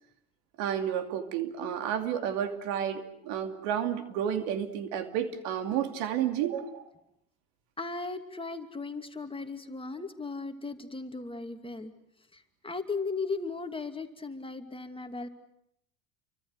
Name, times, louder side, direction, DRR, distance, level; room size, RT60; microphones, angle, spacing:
voice 1, 0.6-6.8, right 9 dB, 70° right, 8 dB, 2.8 m, -31 dB
voice 2, 7.8-11.9 12.3-15.3, left 3 dB, 15° left, 6 dB, 2.6 m, -37 dB
29.5 x 24.5 x 6.6 m, 0.75 s
hypercardioid pair, 75°, 40 cm